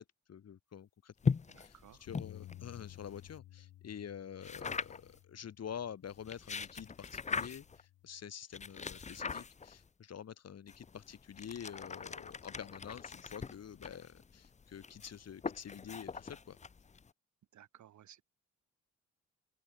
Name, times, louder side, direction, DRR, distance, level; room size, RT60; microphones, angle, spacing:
voice 1, 0.0-16.6, left 8 dB, 55° left, 6.7 m, -48 dB
sound 1, 1.2-3.4 4.4-5.2 6.1-7.8 8.5-9.9 10.7-17.1, left 5 dB, 25° left, 0.7 m, -41 dB
voice 2, 1.5-2.1 17.5-18.2, right 11 dB, 70° right, 6.3 m, -58 dB
Bass guitar, 2.1-6.5 7.1-8.3, left 14 dB, 85° left, 3.2 m, -55 dB
cardioid pair, 90°, 30 cm